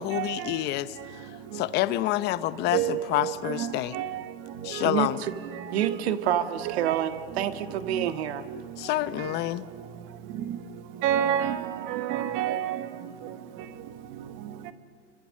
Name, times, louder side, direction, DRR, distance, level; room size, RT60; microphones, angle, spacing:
voice 1, 0.0-4.0 4.6-5.2 8.8-9.7, left 15 dB, 30° left, 0.9 m, -28 dB
voice 2, 2.7-4.1 4.7-4.8 5.8-6.0 6.6-7.0 7.9-8.0 8.5-8.6 11.0-12.9, right 10 dB, 35° right, 1.4 m, -28 dB
voice 3, 4.8-5.3 5.7-8.4, right 10 dB, 60° right, 1.8 m, -28 dB
28.5 x 25.0 x 6.6 m
hypercardioid pair, 140°, 35 cm